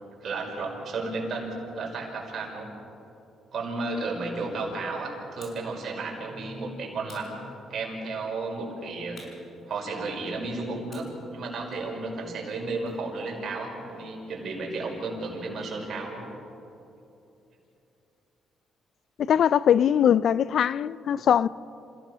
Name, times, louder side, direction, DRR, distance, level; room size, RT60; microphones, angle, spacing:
voice 1, 0.2-2.7 3.5-7.4 7.7-9.2 9.7-16.2 21.1-21.3, right 3 dB, 55° right, 5.6 m, -33 dB
sound 1, 5.4-5.7 7.1-8.0 9.1-10.3 10.9-13.1, left 2 dB, 45° left, 6.1 m, -53 dB
voice 2, 19.3-21.5, left 9 dB, 65° left, 0.4 m, -21 dB
27.5 x 17.0 x 6.2 m
cardioid pair, 90°, 0 cm